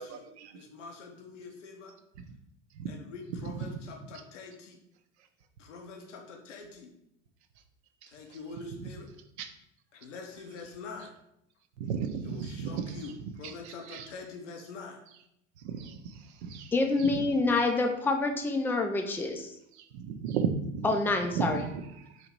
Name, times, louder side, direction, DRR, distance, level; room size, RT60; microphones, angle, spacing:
voice 1, 0.5-1.9 2.9-4.8 5.6-6.9 8.1-9.1 9.9-11.1 12.2-15.0, left 4 dB, 75° left, 2 dB, 0.8 m, -45 dB
voice 2, 11.8-13.0 13.4-14.1 15.6-16.0 16.4-16.7 17.1-17.2 19.9-20.9 21.4-21.6, right 6 dB, 65° right, 7 dB, 0.6 m, -33 dB
voice 3, 16.7-19.5 20.8-21.7, left 3 dB, 5° left, 4 dB, 0.4 m, -27 dB
4.1 x 2.8 x 4.4 m, 0.78 s
figure-of-eight pair, 70°, 36 cm